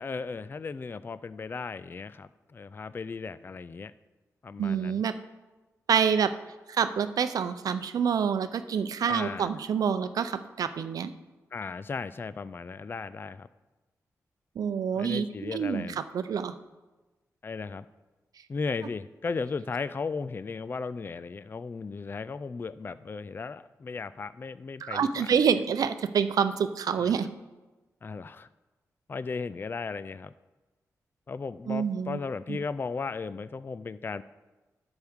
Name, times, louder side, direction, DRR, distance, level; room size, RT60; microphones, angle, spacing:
voice 1, 0.0-3.9 4.4-5.0 9.1-9.5 11.5-13.5 15.0-16.0 17.4-17.9 18.5-25.3 27.0-27.1 28.0-28.5 29.1-30.3 31.3-34.2, left 4 dB, 35° left, 16 dB, 0.3 m, -36 dB
voice 2, 4.6-5.1 5.9-6.3 6.7-11.1 14.6-16.5 24.8-27.3 31.7-32.2 32.5-32.6, right 7 dB, 75° right, 11 dB, 0.5 m, -27 dB
11.5 x 8.0 x 3.6 m, 1.2 s
cardioid pair, 60°, 6 cm